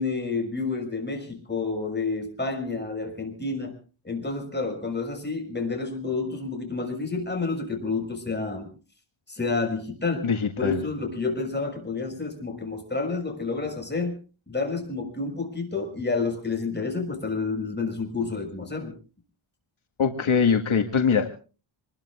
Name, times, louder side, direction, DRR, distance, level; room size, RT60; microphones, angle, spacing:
voice 1, 0.0-3.7 4.0-8.7 9.3-10.3 10.6-14.2 14.5-18.9, left 4 dB, 20° left, 3 dB, 6.3 m, -29 dB
voice 2, 10.2-10.8 20.0-21.3, left 6 dB, 75° left, 4 dB, 1.9 m, -22 dB
27.0 x 21.0 x 2.5 m, 0.37 s
wide cardioid pair, 110°, 50 cm